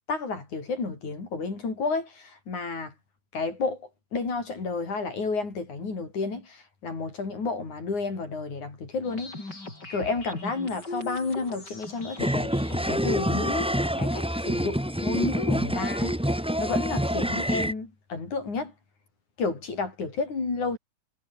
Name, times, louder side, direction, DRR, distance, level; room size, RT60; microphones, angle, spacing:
voice 1, 0.1-2.9 3.3-9.4 9.9-12.6 12.9-18.7 19.4-20.8, left 4 dB, 55° left, 7.5 m, -31 dB
sound 1, 9.0-13.0, left 2 dB, 25° left, 7.4 m, -40 dB
sound 2, 12.2-17.7, equal, 5° right, 1.1 m, -27 dB
omnidirectional pair, 4.1 m